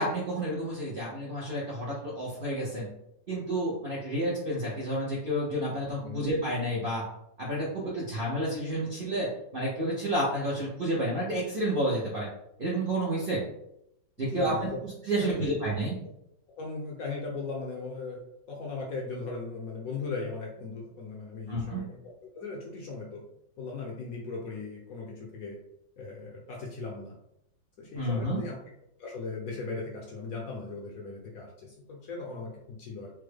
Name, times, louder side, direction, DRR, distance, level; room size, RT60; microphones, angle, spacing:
voice 1, 0.0-2.9 3.3-7.0 7.4-12.3 12.6-13.4 14.2-15.9 21.5-21.8 27.9-28.4, right 1 dB, 60° right, -7 dB, 0.5 m, -30 dB
voice 2, 14.2-14.8 15.2-15.9 16.6-18.2 18.5-23.2 23.6-25.6 26.0-27.1 27.8-28.6 29.0-33.1, left 3 dB, 70° left, -1 dB, 0.9 m, -38 dB
3.4 x 2.1 x 3.3 m, 0.79 s
omnidirectional pair, 1.9 m